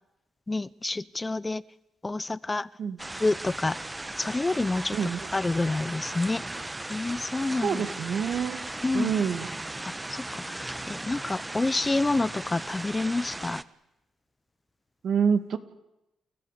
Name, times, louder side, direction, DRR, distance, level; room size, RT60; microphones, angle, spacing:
voice 1, 0.5-1.6 2.0-2.7 3.2-3.8 4.2-6.4 6.9-8.0 8.8-9.1 9.8-13.6, left 2 dB, 25° left, 20 dB, 0.8 m, -28 dB
sound 1, 3.0-13.6, right 2 dB, 20° right, 1.2 m, -37 dB
voice 2, 7.6-8.6 8.9-9.5 15.0-15.6, right 7 dB, 65° right, 10 dB, 2.2 m, -26 dB
29.0 x 15.0 x 8.4 m, 0.92 s
supercardioid pair, 50°, 0 cm